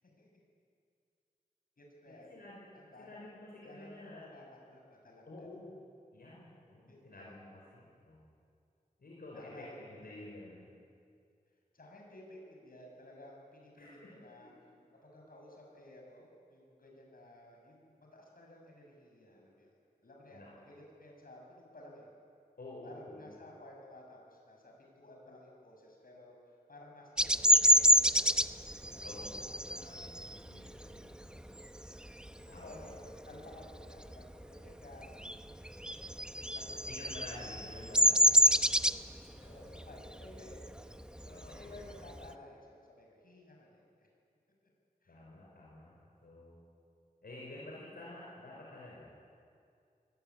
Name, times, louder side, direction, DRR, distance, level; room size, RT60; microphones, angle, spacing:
voice 1, 1.8-2.3 2.7-3.1 3.6-5.5 6.9-7.4 9.3-10.3 11.7-14.5 14.9-19.7 20.0-22.1 22.8-29.8 30.7-31.6 32.3-35.1 35.5-36.2 36.5-36.9 38.7-38.9 39.4-40.9 41.5-44.1 45.0-45.2, left 1 dB, 70° left, 0 dB, 7.2 m, -55 dB
voice 2, 2.3-2.6 3.0-4.2 5.3-5.7 6.1-8.2 9.0-10.7 13.8-14.1 20.3-20.5 22.6-23.4 29.0-31.4 32.5-33.0 36.9-38.4 39.3-39.6 41.2-41.7 45.1-46.6 47.2-49.1, left 1 dB, 85° left, -5 dB, 5.7 m, -50 dB
Bird vocalization bird call bird song, 27.2-32.4 32.8-33.1 33.4-34.7 34.9-42.3, equal, 5° right, 0.7 m, -27 dB
24.5 x 19.5 x 9.7 m, 2.4 s
wide cardioid pair, 85°, 15 cm